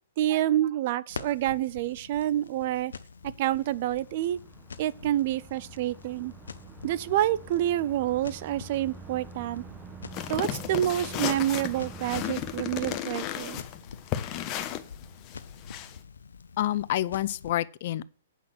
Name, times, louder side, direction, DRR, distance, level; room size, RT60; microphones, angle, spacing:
voice 1, 0.2-2.9 3.2-4.4 4.8-6.3 6.8-9.6 10.3-13.6, right 13 dB, 50° right, 0.6 m, -28 dB
Crackle, 1.1-17.5, left 5 dB, 80° left, 0.8 m, -47 dB
sound 1, 3.2-13.0, right 5 dB, 15° right, 1.4 m, -46 dB
sound 2, 10.1-16.0, left 11 dB, 35° left, 1.0 m, -34 dB
voice 2, 16.6-18.2, left 13 dB, 50° left, 0.5 m, -28 dB
8.3 x 5.9 x 7.7 m
hypercardioid pair, 130°, 0 cm